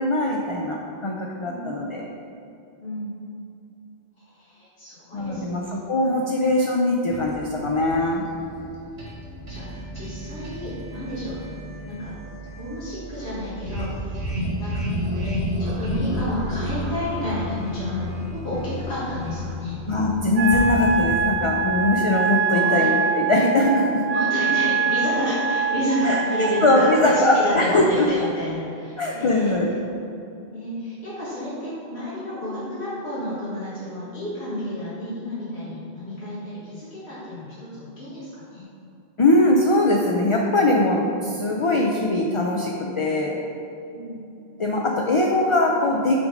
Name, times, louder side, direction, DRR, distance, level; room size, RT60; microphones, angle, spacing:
voice 1, 0.0-2.0 5.1-5.6 5.9-8.2 19.9-24.0 26.0-28.1 29.0-29.7 39.2-43.4 44.6-46.2, left 2 dB, 45° left, -1 dB, 0.4 m, -21 dB
voice 2, 2.8-3.1 4.3-5.6 6.0-6.1 9.5-11.4 11.9-12.2 12.5-14.7 15.1-19.8 22.5-22.9 24.1-29.8 30.5-38.6 43.9-44.2, left 1 dB, 85° left, -11 dB, 1.9 m, -30 dB
sound 1, 7.1-21.6, equal, 90° right, 1.7 m, -32 dB
Wind instrument woodwind instrument, 20.3-26.9, right 5 dB, 50° right, 0.5 m, -24 dB
Explosion, 20.5-22.3, left 1 dB, 60° left, 1.1 m, -33 dB
5.9 x 3.8 x 5.2 m, 2.7 s
omnidirectional pair, 1.1 m